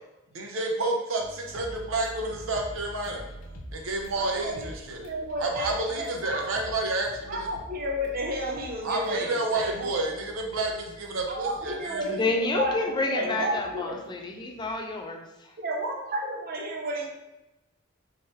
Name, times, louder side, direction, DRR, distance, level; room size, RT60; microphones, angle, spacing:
voice 1, 0.3-3.2 3.7-5.0 5.4-7.5 8.8-12.0, right 2 dB, 80° right, 1 dB, 0.7 m, -30 dB
sound 1, 1.2-15.0, equal, 85° left, 0.6 m, -46 dB
voice 2, 4.1-4.7 5.0-6.7 7.3-10.1 11.3-14.0 15.6-17.1, right 1 dB, 45° right, 0 dB, 0.7 m, -32 dB
voice 3, 12.1-15.5, left 3 dB, 20° left, 3 dB, 0.3 m, -29 dB
3.6 x 2.8 x 3.1 m, 0.97 s
head